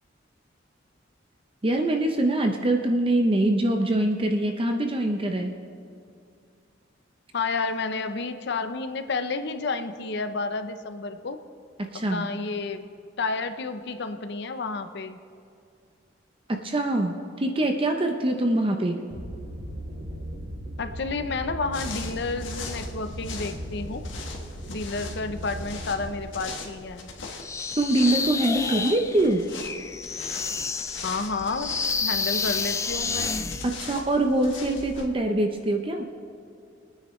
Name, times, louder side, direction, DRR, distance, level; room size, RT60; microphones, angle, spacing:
voice 1, 1.6-5.5 11.8-12.3 16.5-19.0 27.8-29.5 33.6-36.1, right 1 dB, 30° right, 4 dB, 0.7 m, -24 dB
voice 2, 7.3-11.4 11.9-12.9 13.2-15.2 20.8-24.0 24.7-27.1 31.0-33.3, left 3 dB, 65° left, 9 dB, 0.7 m, -31 dB
sound 1, 19.1-26.2, equal, 50° right, 2.3 m, -37 dB
sound 2, 21.7-35.1, left 4 dB, 90° left, 1.5 m, -40 dB
sound 3, 27.4-33.7, left 5 dB, 15° left, 0.4 m, -30 dB
22.5 x 9.5 x 3.2 m, 2.4 s
head